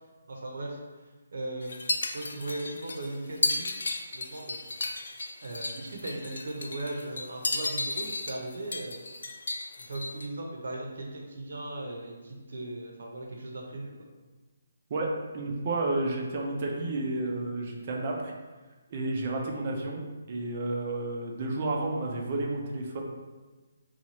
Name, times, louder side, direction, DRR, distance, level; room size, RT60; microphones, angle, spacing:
voice 1, 0.3-0.8 1.3-3.9 4.1-4.6 5.4-9.0 9.8-14.1, right 2 dB, 65° right, 0 dB, 0.7 m, -38 dB
sound 1, 1.6-10.3, left 2 dB, 65° left, 0.4 m, -34 dB
voice 2, 15.3-18.3 18.9-20.0 20.3-23.0, right 2 dB, 25° right, 0 dB, 0.4 m, -31 dB
2.9 x 2.3 x 4.0 m, 1.3 s
hypercardioid pair, 180°, 0 cm